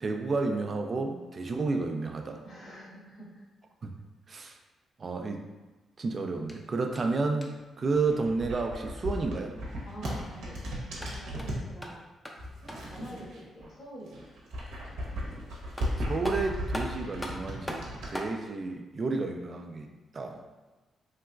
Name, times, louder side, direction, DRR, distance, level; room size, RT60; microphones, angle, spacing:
voice 1, 0.0-2.4 3.8-3.9 4.3-4.6 5.0-5.4 6.0-9.6 16.0-17.8 18.1-20.4, right 3 dB, 45° right, 4 dB, 0.4 m, -31 dB
voice 2, 2.4-3.4 9.8-12.0 12.8-14.4, equal, 60° left, -6 dB, 1.4 m, -46 dB
sound 1, 6.5-7.8 10.8-13.0 15.3-15.4 15.8-18.4, equal, 10° left, 0.5 m, -41 dB
sound 2, 7.8-11.7 12.4-13.7 14.0-18.1, equal, 85° right, 0.7 m, -36 dB
3.2 x 2.8 x 2.3 m, 1.2 s
cardioid pair, 65°, 0 cm